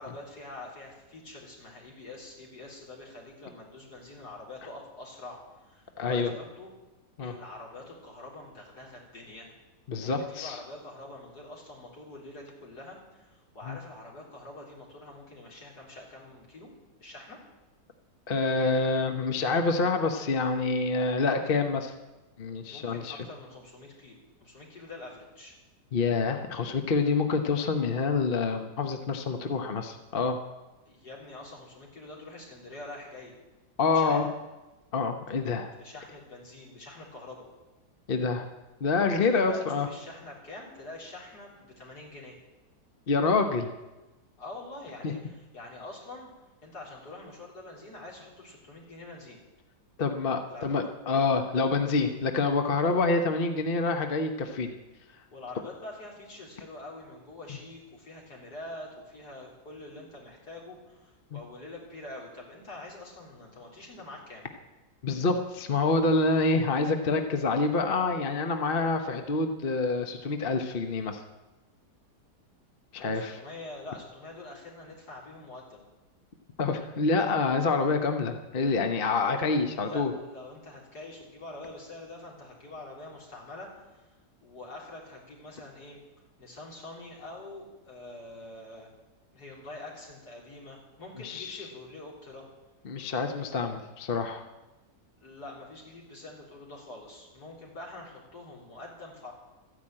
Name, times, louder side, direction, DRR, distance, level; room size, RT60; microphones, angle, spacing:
voice 1, 0.0-6.7 7.2-9.5 10.0-16.7 17.0-17.4 22.7-25.6 30.9-33.3 33.9-34.3 35.8-37.5 39.1-42.4 44.4-46.3 46.6-49.4 50.5-50.8 55.3-64.5 73.0-75.9 79.7-84.1 84.4-86.0 86.4-88.9 89.3-92.4 93.1-93.4 95.2-99.3, left 2 dB, 70° left, -3 dB, 4.3 m, -45 dB
voice 2, 6.0-6.3 7.2-7.3 9.9-10.5 13.7-13.8 18.3-21.9 22.4-23.2 25.9-30.4 33.8-34.3 34.9-35.7 38.1-38.5 38.8-39.9 43.1-43.7 45.0-45.1 50.0-54.7 61.3-61.4 65.0-71.2 72.9-73.4 76.6-80.1 91.2-91.6 92.8-94.4, left 4 dB, 40° left, 6 dB, 1.0 m, -27 dB
13.5 x 10.0 x 8.8 m, 1.1 s
omnidirectional pair, 1.8 m